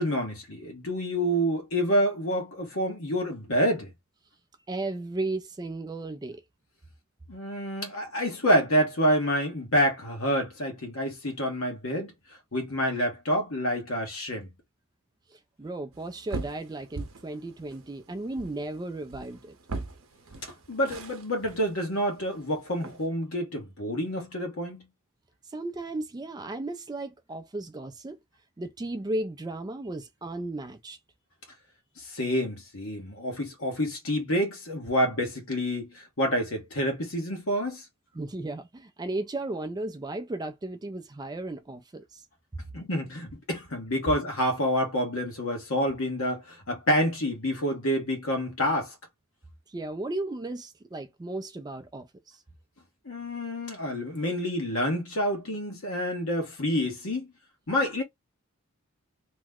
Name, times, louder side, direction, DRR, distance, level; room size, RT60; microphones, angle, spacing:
voice 1, 0.0-3.9 7.3-12.1 12.5-14.5 20.4-24.9 32.1-37.8 42.7-48.9 53.0-57.3 57.7-58.0, equal, 65° left, 1.2 m, -28 dB
voice 2, 4.7-6.4 15.3-19.5 25.5-28.2 28.6-31.0 38.1-42.2 49.7-52.4, right 2 dB, 20° right, 0.3 m, -35 dB
sound 1, 15.9-23.1, right 3 dB, 65° right, 0.7 m, -42 dB
2.9 x 2.1 x 3.5 m
head